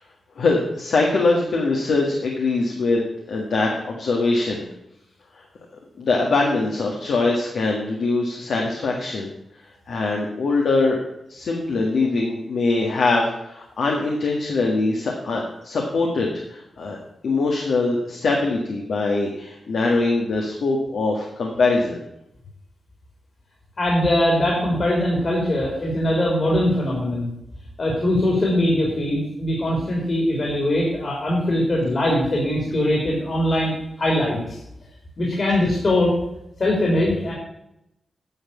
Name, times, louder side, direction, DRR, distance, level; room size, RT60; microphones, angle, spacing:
voice 1, 0.3-3.0 3.3-4.7 5.3-5.4 6.0-9.3 9.9-11.0 11.3-17.0 17.2-22.0, left 3 dB, 80° left, 0 dB, 1.7 m, -22 dB
voice 2, 23.8-27.3 27.8-33.7 34.0-34.6 35.2-36.1 36.6-37.3, left 1 dB, 50° left, -2 dB, 3.3 m, -21 dB
10.0 x 5.9 x 8.4 m, 0.83 s
wide cardioid pair, 100°, 0 cm